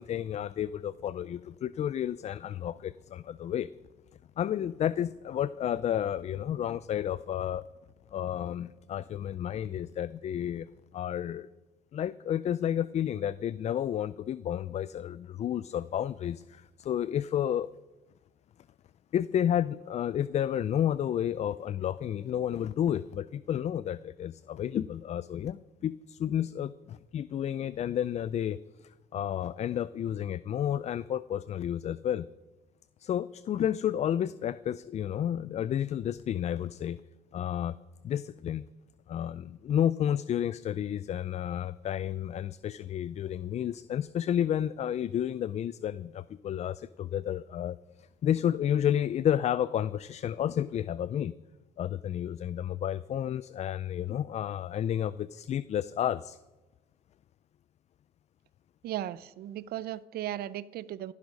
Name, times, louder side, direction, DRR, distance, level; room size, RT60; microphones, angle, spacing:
voice 1, 0.0-3.7 4.4-7.7 8.1-10.7 10.9-11.5 11.9-17.7 19.1-32.3 33.0-37.0 37.3-37.8 38.0-38.6 39.1-51.3 51.8-56.4, left 10 dB, 40° left, 18 dB, 0.4 m, -31 dB
voice 2, 58.8-61.1, right 12 dB, 65° right, 19 dB, 0.6 m, -36 dB
17.0 x 11.0 x 5.3 m, 1.1 s
cardioid pair, 110°, 17 cm